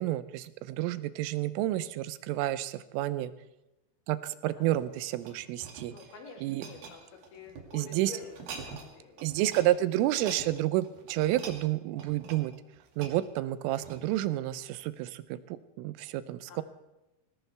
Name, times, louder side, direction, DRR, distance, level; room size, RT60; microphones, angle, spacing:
voice 1, 0.0-3.3 4.1-5.9 6.4-6.6 7.7-8.1 9.2-12.5 13.0-16.6, right 15 dB, 90° right, 14 dB, 3.4 m, -30 dB
sound 1, 4.6-7.8 8.2-8.9 9.2-9.7 10.0-14.3 14.8-15.0, right 5 dB, 55° right, 3.6 m, -46 dB
voice 2, 5.9-9.4 16.5-16.6, left 4 dB, 55° left, 1 dB, 4.7 m, -49 dB
20.5 x 18.0 x 3.5 m, 0.96 s
omnidirectional pair, 5.7 m